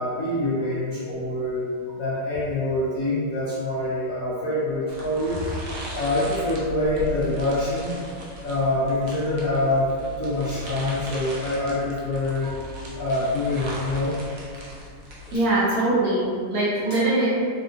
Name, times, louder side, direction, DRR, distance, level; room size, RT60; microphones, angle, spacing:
voice 1, 0.0-1.7 1.9-5.5 5.9-8.0 8.4-9.9 10.2-12.5 12.9-14.1, left 1 dB, 60° left, -10 dB, 0.9 m, -25 dB
sound 1, 4.9-15.4, left 1 dB, 85° right, 1.4 m, -38 dB
voice 2, 12.4-12.8 15.3-17.3, right 2 dB, 65° right, -9 dB, 1.0 m, -23 dB
3.4 x 2.3 x 2.5 m, 2.1 s
omnidirectional pair, 2.0 m